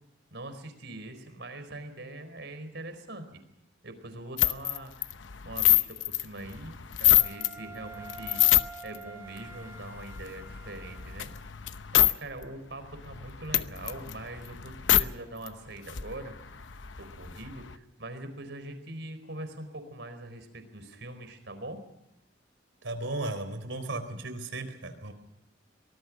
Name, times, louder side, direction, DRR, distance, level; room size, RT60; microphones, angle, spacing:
voice 1, 0.3-3.2 3.8-5.1 5.4-8.4 8.8-11.3 11.9-16.3 17.0-21.8, right 1 dB, 65° right, 8 dB, 4.5 m, -42 dB
sound 1, 4.4-7.5 7.9-9.0 9.4-12.1 12.4-12.5 12.8-15.0 15.5-15.6 15.8-17.7, left 13 dB, 80° left, 0.8 m, -26 dB
Wind instrument woodwind instrument, 7.1-11.4, right 4 dB, 15° right, 2.8 m, -47 dB
voice 2, 22.8-25.1, right 2 dB, 90° right, 9 dB, 3.9 m, -35 dB
24.5 x 20.0 x 6.2 m, 0.85 s
head